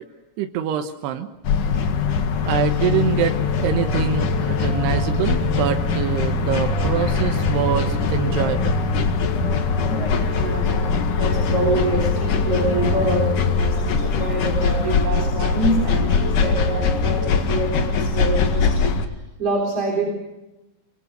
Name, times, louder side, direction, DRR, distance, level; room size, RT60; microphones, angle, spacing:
voice 1, 0.4-1.3 2.5-3.3 3.6-8.8, right 9 dB, 90° right, 6 dB, 3.2 m, -24 dB
sound 1, 1.4-19.1, left 4 dB, 60° left, 3.1 m, -21 dB
sound 2, 2.4-17.4, left 4 dB, 30° left, 8.3 m, -35 dB
voice 2, 9.8-18.8 19.4-20.1, right 2 dB, 35° right, 0 dB, 4.7 m, -26 dB
25.0 x 24.0 x 6.7 m, 1.0 s
omnidirectional pair, 4.6 m